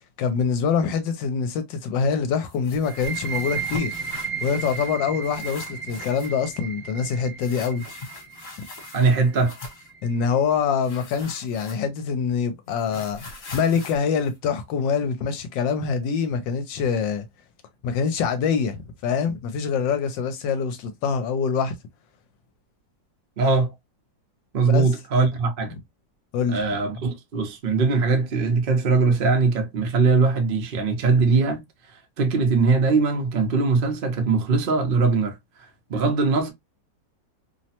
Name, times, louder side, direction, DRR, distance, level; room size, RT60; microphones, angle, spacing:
voice 1, 0.2-3.9 4.4-7.8 10.0-13.2 13.5-17.2 17.8-21.7 24.6-24.9 26.3-26.7, left 6 dB, 80° left, 1.2 m, -25 dB
sound 1, 2.5-5.0 5.2-6.4 7.4-9.9 10.8-12.1 12.4-15.1, left 3 dB, 55° left, 1.3 m, -41 dB
sound 2, 2.8-10.3, right 6 dB, 30° left, 0.6 m, -35 dB
voice 2, 8.9-9.5 23.4-23.7 24.5-25.7 26.5-31.6 32.2-35.3 35.9-36.5, right 4 dB, 75° right, 0.5 m, -21 dB
3.0 x 2.0 x 2.7 m
omnidirectional pair, 2.0 m